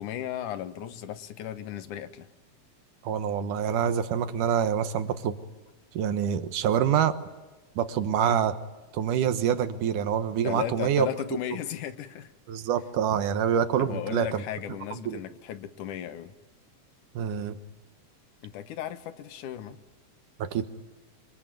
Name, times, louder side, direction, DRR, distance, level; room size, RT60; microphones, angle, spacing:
voice 1, 0.0-2.3 10.4-12.3 13.8-16.3 18.4-19.8, left 11 dB, 80° left, 11 dB, 2.7 m, -35 dB
voice 2, 3.0-5.3 5.9-7.2 7.8-8.5 8.9-11.1 12.5-14.4 15.1-15.2 17.2-17.6 20.4-20.7, right 8 dB, 90° right, 10 dB, 2.8 m, -26 dB
25.5 x 22.5 x 9.3 m, 1.1 s
omnidirectional pair, 3.5 m